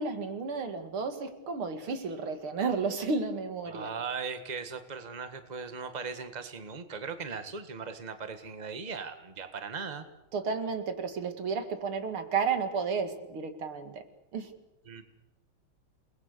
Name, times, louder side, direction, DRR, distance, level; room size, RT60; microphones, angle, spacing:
voice 1, 0.0-3.9 10.3-14.0 14.3-14.5, right 5 dB, 85° right, 8 dB, 3.0 m, -32 dB
voice 2, 3.7-10.1 14.9-15.0, right 5 dB, 20° right, 9 dB, 1.6 m, -38 dB
29.0 x 20.5 x 6.8 m, 0.97 s
omnidirectional pair, 2.3 m